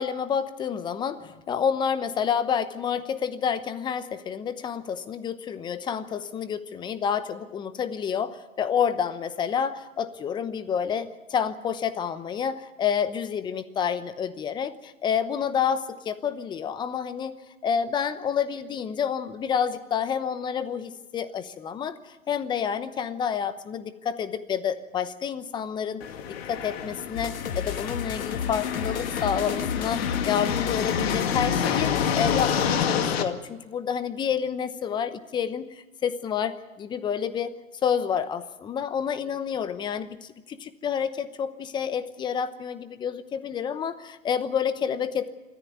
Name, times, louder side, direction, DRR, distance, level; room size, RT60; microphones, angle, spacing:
voice 1, 0.0-17.3 17.6-26.0 26.5-37.5 37.8-45.3, left 7 dB, 10° left, 13 dB, 0.9 m, -29 dB
sound 1, 26.0-33.2, left 8 dB, 45° left, 2.2 m, -28 dB
sound 2, 27.2-32.8, left 7 dB, 80° left, 1.5 m, -33 dB
26.0 x 14.0 x 9.4 m, 1.2 s
hypercardioid pair, 135°, 41 cm